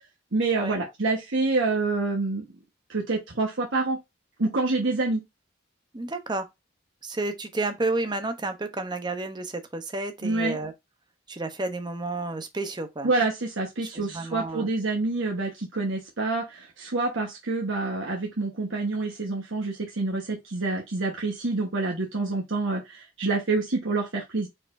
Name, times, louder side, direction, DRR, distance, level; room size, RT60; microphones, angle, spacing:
voice 1, 0.3-2.5 2.9-4.0 4.4-5.2 10.2-10.6 13.0-24.5, right 3 dB, 85° right, 1.2 m, -27 dB
voice 2, 5.9-6.4 7.0-10.7 11.3-13.1 13.8-14.7, right 2 dB, 20° right, 0.7 m, -31 dB
4.9 x 4.2 x 2.6 m
head